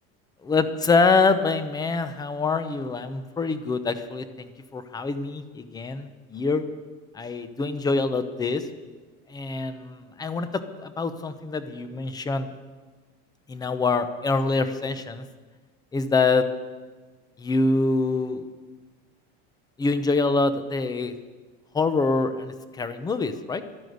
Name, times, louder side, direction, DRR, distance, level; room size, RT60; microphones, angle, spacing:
voice 1, 0.4-6.6 7.1-8.7 9.3-12.5 13.5-15.3 15.9-16.5 17.4-18.5 19.8-21.1 21.7-23.6, left 3 dB, 15° left, 11 dB, 0.8 m, -25 dB
12.5 x 11.5 x 9.4 m, 1.4 s
cardioid pair, 165°, 30 cm